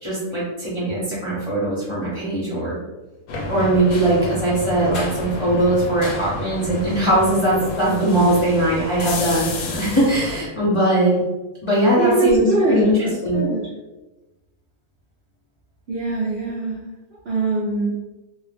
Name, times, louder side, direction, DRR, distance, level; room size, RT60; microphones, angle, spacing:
voice 1, 0.0-2.7 3.4-11.2 11.6-12.9 13.2-13.4, right 1 dB, 30° left, -8 dB, 0.6 m, -20 dB
sound 1, 3.3-10.4, left 2 dB, 85° left, 1.1 m, -30 dB
voice 2, 12.0-13.7 15.9-16.8 17.3-17.9, right 3 dB, 65° right, -5 dB, 0.6 m, -22 dB
2.6 x 2.0 x 3.3 m, 1.1 s
omnidirectional pair, 1.5 m